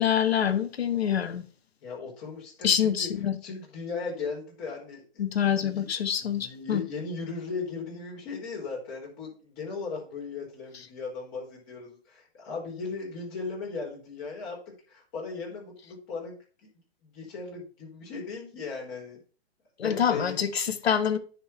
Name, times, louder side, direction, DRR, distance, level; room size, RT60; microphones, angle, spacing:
voice 1, 0.0-1.4 2.6-3.4 5.2-6.8 19.8-21.2, left 8 dB, 75° left, 1.3 m, -26 dB
voice 2, 1.8-3.1 3.4-5.9 6.2-16.4 17.0-19.2 19.8-20.4, left 4 dB, 35° left, 4.4 m, -37 dB
9.6 x 4.0 x 5.7 m
hypercardioid pair, 130°, 31 cm